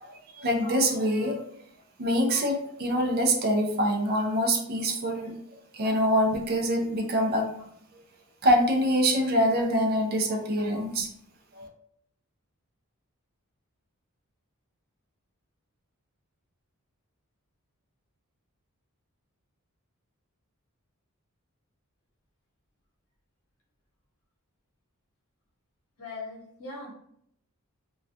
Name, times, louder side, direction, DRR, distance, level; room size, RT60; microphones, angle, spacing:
voice 1, 0.0-1.4 2.0-5.3 5.7-7.6 8.4-11.1 11.6-11.7, equal, 45° right, 2 dB, 0.4 m, -25 dB
voice 2, 26.0-26.9, left 3 dB, 80° left, -3 dB, 0.9 m, -39 dB
2.2 x 2.2 x 2.6 m, 0.71 s
head